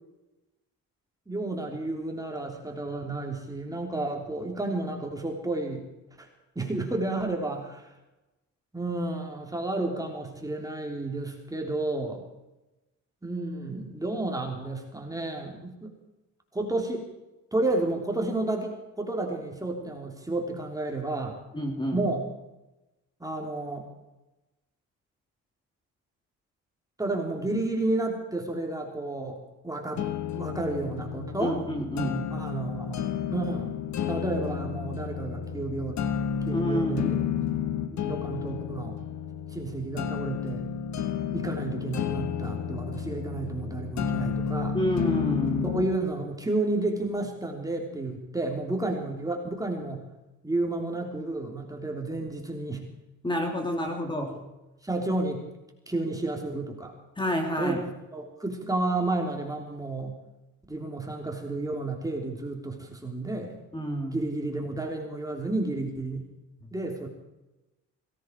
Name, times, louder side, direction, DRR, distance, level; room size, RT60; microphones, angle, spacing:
voice 1, 1.3-5.8 6.2-6.3 6.5-7.9 8.7-12.2 13.2-15.9 16.5-17.1 17.5-21.4 21.9-22.2 23.2-23.9 27.0-29.4 29.6-30.0 30.3-31.6 32.3-33.0 33.3-33.7 34.1-36.0 36.4-37.2 37.9-39.0 39.5-40.7 41.3-44.8 45.6-50.0 50.4-52.8 54.8-55.4 55.9-56.9 57.6-57.8 58.1-60.1 60.7-63.5 64.1-66.3 66.7-67.1, right 2 dB, 10° right, 1 dB, 3.4 m, -31 dB
voice 2, 21.5-22.1 31.4-32.3 36.5-37.1 44.7-45.7 53.2-54.4 57.2-57.8 63.7-64.2, equal, 15° left, 2 dB, 3.3 m, -29 dB
sound 1, 30.0-46.0, left 8 dB, 65° left, 1.4 m, -31 dB
18.0 x 17.0 x 4.7 m, 1.0 s
cardioid pair, 90°, 30 cm